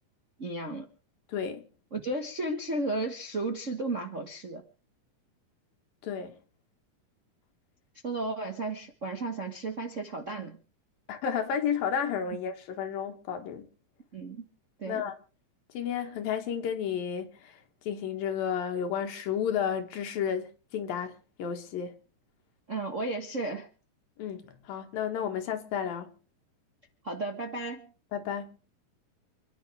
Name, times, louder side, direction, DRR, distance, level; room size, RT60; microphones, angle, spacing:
voice 1, 0.4-0.9 1.9-4.6 8.0-10.6 12.3-12.4 14.1-14.5 14.8-15.0 22.7-23.7 27.0-27.9, right 2 dB, 45° right, 0.9 m, -34 dB
voice 2, 1.3-1.6 6.0-6.4 11.1-13.7 14.9-15.1 15.7-17.6 17.9-21.9 24.2-26.1 28.1-28.6, left 8 dB, 85° left, 3.5 m, -32 dB
28.5 x 10.5 x 3.4 m
omnidirectional pair, 3.9 m